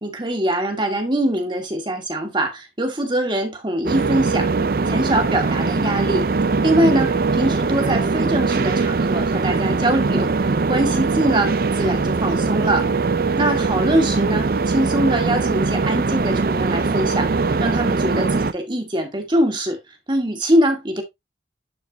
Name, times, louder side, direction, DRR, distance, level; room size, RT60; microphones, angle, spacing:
voice 1, 0.0-4.5 4.9-6.2 6.6-12.9 13.4-17.3 17.6-19.8 20.1-21.0, right 1 dB, 25° right, 2.0 m, -22 dB
sound 1, 3.9-18.5, right 4 dB, 55° right, 0.5 m, -21 dB
11.5 x 4.7 x 2.9 m
head